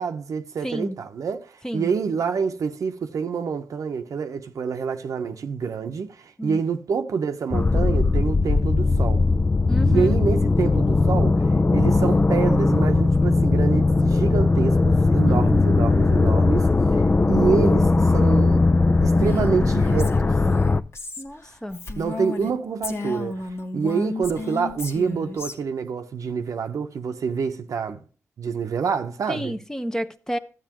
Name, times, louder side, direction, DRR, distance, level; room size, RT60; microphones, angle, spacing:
voice 1, 0.0-9.3 9.9-18.7 19.0-20.3 21.9-28.0 28.4-29.6, right 6 dB, 80° right, 0.9 m, -27 dB
voice 2, 0.6-1.0 1.6-1.9 6.4-6.6 9.7-10.2 15.3-15.6 21.2-21.8 29.3-30.4, equal, 10° left, 0.9 m, -31 dB
sound 1, 7.5-20.8, left 3 dB, 30° left, 0.5 m, -19 dB
Female speech woman speaking, 19.1-22.5 22.8-25.5, left 2 dB, 55° left, 1.5 m, -32 dB
12.5 x 8.2 x 3.0 m
cardioid pair, 60°, 6 cm